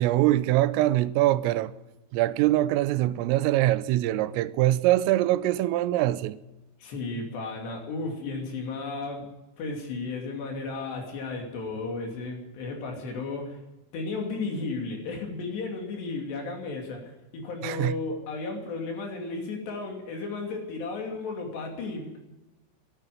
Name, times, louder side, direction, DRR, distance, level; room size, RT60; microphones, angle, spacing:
voice 1, 0.0-1.7 2.1-6.4 17.6-18.0, right 15 dB, 85° right, 3.3 m, -23 dB
voice 2, 6.8-9.3 9.6-13.6 13.9-22.2, left 3 dB, 60° left, 4.6 m, -34 dB
13.0 x 11.5 x 9.8 m
omnidirectional pair, 5.8 m